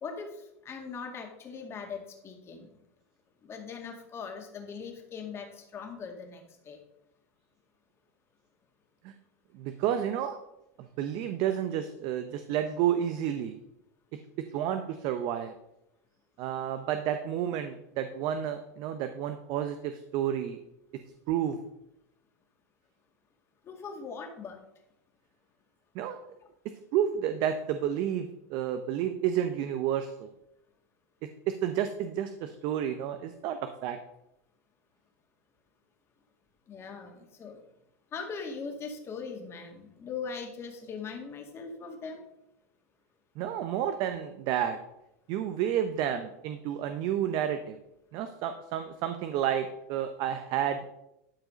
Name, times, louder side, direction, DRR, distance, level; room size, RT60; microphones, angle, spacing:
voice 1, 0.0-2.7 3.4-6.8 23.6-24.6 36.7-37.6 38.1-42.3, left 5 dB, 30° left, 3 dB, 2.1 m, -40 dB
voice 2, 9.5-10.4 10.8-13.6 14.5-15.5 16.4-20.6 21.3-21.6 25.9-26.2 26.9-30.3 31.5-34.0 43.4-44.8 45.3-47.8 48.1-50.9, right 10 dB, 55° right, 8 dB, 0.8 m, -30 dB
12.0 x 4.8 x 5.1 m, 0.85 s
supercardioid pair, 115°, 8 cm